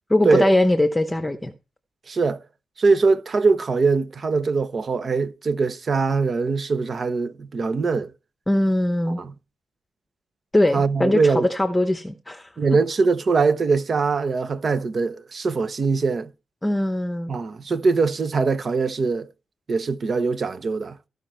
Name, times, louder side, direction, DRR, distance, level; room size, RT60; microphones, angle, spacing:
voice 1, 0.1-1.5 8.5-9.2 10.5-12.5 16.6-17.3, left 1 dB, 10° left, 0.9 m, -21 dB
voice 2, 2.1-2.4 2.8-8.1 9.2-9.3 10.7-11.5 12.6-16.3 17.3-19.3 19.7-21.0, right 4 dB, 45° right, 0.9 m, -22 dB
14.5 x 5.2 x 4.4 m
cardioid pair, 90°, 0 cm